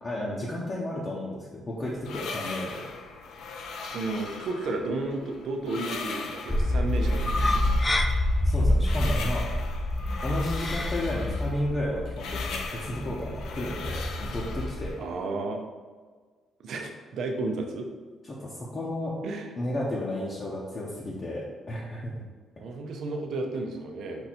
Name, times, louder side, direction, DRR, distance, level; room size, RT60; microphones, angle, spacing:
voice 1, 0.0-2.8 8.4-9.5 10.2-14.9 18.2-19.2 19.6-22.2, left 1 dB, 35° left, -6 dB, 0.8 m, -33 dB
sound 1, 1.8-15.2, left 4 dB, 75° left, 0.5 m, -39 dB
voice 2, 3.8-7.8 15.0-15.6 16.6-17.9 19.2-19.5 22.6-24.3, right 3 dB, 70° right, 3 dB, 0.6 m, -33 dB
sound 2, 6.5-14.9, left 1 dB, 20° left, 0.4 m, -27 dB
4.5 x 2.7 x 4.2 m, 1.5 s
cardioid pair, 90°, 0 cm